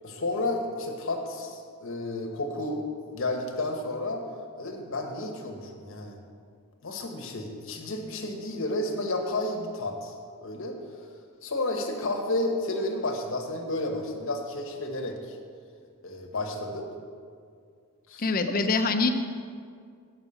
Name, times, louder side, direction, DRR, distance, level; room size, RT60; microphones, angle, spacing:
voice 1, 0.0-2.8 3.1-4.2 4.6-6.2 6.8-10.1 10.4-10.8 11.4-15.4 16.0-16.9 18.1-18.3, left 2 dB, 65° left, 3 dB, 1.1 m, -31 dB
voice 2, 18.2-19.1, left 3 dB, 40° left, 7 dB, 0.6 m, -24 dB
7.1 x 5.7 x 6.8 m, 2.2 s
head